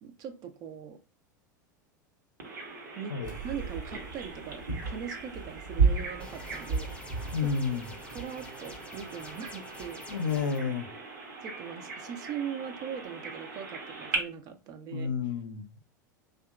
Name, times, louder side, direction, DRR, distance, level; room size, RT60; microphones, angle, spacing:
voice 1, 0.0-1.0 2.9-3.1 3.4-7.8 8.1-10.3 11.4-15.1, right 8 dB, 35° right, 0.3 m, -41 dB
Bird vocalization bird call bird song, 2.4-14.2, right 3 dB, 65° right, 0.9 m, -42 dB
sound 1, 3.2-8.2, right 5 dB, 85° right, 1.1 m, -32 dB
sound 2, 6.2-10.6, left 1 dB, 10° left, 0.5 m, -48 dB
voice 2, 7.3-7.9 10.1-10.9 14.9-15.8, left 5 dB, 75° left, 0.4 m, -30 dB
2.7 x 2.3 x 2.3 m
figure-of-eight pair, 85°, 10 cm